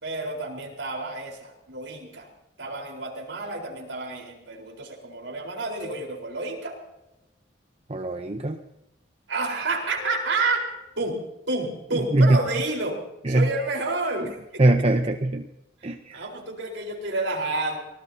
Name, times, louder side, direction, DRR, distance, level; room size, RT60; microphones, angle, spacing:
voice 1, 0.0-2.3 2.6-6.8 9.3-10.6 11.0-11.2 11.5-13.0 13.3-14.6 16.1-17.8, right 2 dB, 90° right, 1 dB, 4.4 m, -29 dB
sound 1, 5.8-6.9 10.0-11.1, left 4 dB, 50° left, 5.2 m, -45 dB
voice 2, 7.9-8.6 12.1-12.4 13.2-13.5 14.6-15.5 15.8-16.2, right 2 dB, 35° right, 7 dB, 0.7 m, -21 dB
24.5 x 19.0 x 2.8 m, 0.93 s
head